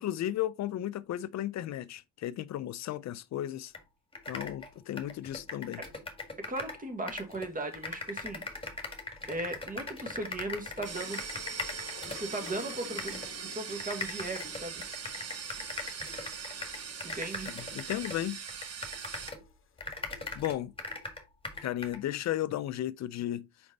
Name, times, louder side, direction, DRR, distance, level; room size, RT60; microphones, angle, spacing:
voice 1, 0.0-3.7 4.3-5.8 17.5-18.4 20.4-20.7 21.6-23.5, left 12 dB, 65° left, 0.5 m, -34 dB
sound 1, 3.7-3.8 4.1-6.8 7.1-12.5 13.0-13.3 13.8-19.5 19.8-22.0, left 3 dB, 20° left, 1.8 m, -40 dB
voice 2, 6.5-8.4 9.3-11.2 12.1-13.1 13.4-14.8 17.0-17.5, right 2 dB, 25° right, 1.8 m, -37 dB
sound 2, 7.3-20.4, left 7 dB, 45° left, 0.9 m, -53 dB
sound 3, 10.8-19.3, right 7 dB, 55° right, 1.3 m, -41 dB
5.2 x 5.0 x 3.9 m
cardioid pair, 90°, 30 cm